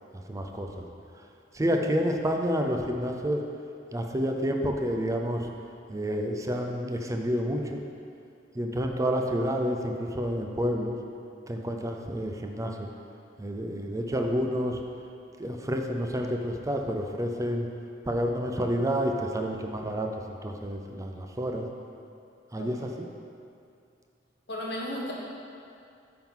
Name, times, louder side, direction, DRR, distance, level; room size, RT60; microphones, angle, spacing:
voice 1, 0.3-0.9 1.5-3.4 3.9-5.5 5.9-7.8 8.5-11.0 11.5-12.9 13.4-14.8 15.4-17.7 18.0-20.1 20.4-21.7 22.5-22.8, equal, 20° right, 3 dB, 0.5 m, -29 dB
voice 2, 24.5-25.1, left 1 dB, 65° left, -3 dB, 1.3 m, -34 dB
9.0 x 3.8 x 5.6 m, 2.5 s
head